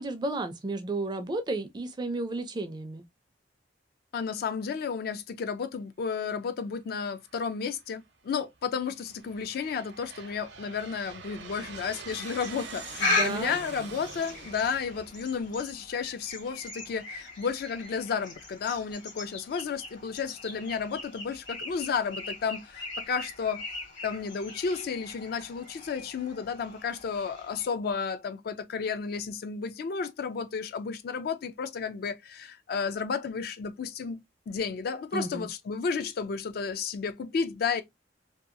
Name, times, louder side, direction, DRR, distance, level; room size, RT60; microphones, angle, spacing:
voice 1, 0.0-3.0 13.0-13.6 35.1-35.5, right 2 dB, 25° right, 0.4 m, -33 dB
voice 2, 4.1-23.6 24.0-37.8, left 6 dB, 55° left, 0.3 m, -32 dB
Aircraft, 7.3-7.8 8.5-16.1, right 5 dB, 70° right, 0.6 m, -45 dB
sound 1, 12.4-27.7, left 3 dB, 85° left, 1.3 m, -38 dB
2.7 x 2.3 x 2.5 m
head